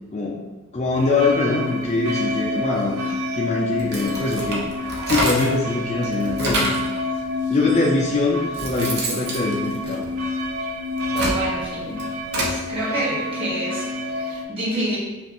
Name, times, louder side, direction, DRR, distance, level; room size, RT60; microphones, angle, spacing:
voice 1, 0.7-3.0 3.3-4.6 5.1-6.7 7.5-10.1, left 3 dB, 30° left, -3 dB, 0.4 m, -23 dB
sound 1, 0.9-14.4, left 2 dB, 80° right, 0.5 m, -28 dB
sound 2, 3.8-5.6 6.0-6.9 7.7-7.8 8.3-10.4 10.9-12.6, right 1 dB, 50° right, 0.8 m, -27 dB
voice 2, 11.1-12.0 12.4-15.0, right 1 dB, 25° right, -7 dB, 1.5 m, -28 dB
5.1 x 2.4 x 2.9 m, 1.2 s
head